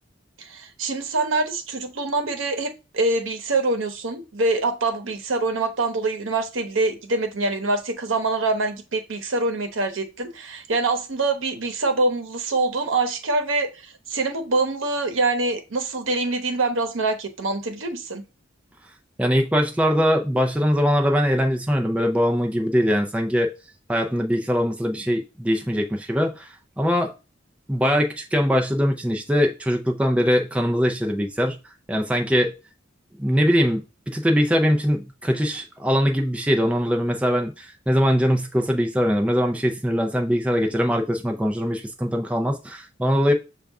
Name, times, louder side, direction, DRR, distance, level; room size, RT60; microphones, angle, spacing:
voice 1, 0.4-18.2, right 3 dB, 85° right, 0.8 m, -25 dB
voice 2, 19.2-23.5 23.9-27.1 27.7-31.6 31.9-32.5 33.2-33.8 34.1-43.3, equal, 5° right, 0.4 m, -22 dB
6.4 x 2.3 x 3.5 m
head